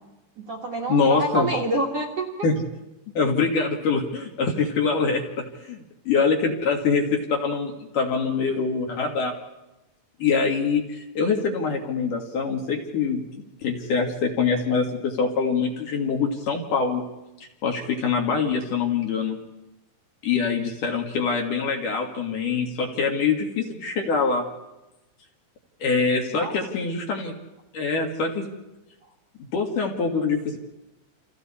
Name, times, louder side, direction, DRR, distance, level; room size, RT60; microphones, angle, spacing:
voice 1, 0.4-2.3 26.3-26.5, right 2 dB, 50° right, 3 dB, 2.2 m, -27 dB
voice 2, 0.9-1.5 2.4-2.5 3.1-9.3 10.2-13.2 13.6-17.0 17.6-19.4 20.2-24.5 25.8-27.3 27.7-28.5 29.5-30.6, left 5 dB, 55° left, 1 dB, 3.0 m, -24 dB
29.5 x 26.5 x 4.3 m, 0.99 s
omnidirectional pair, 4.9 m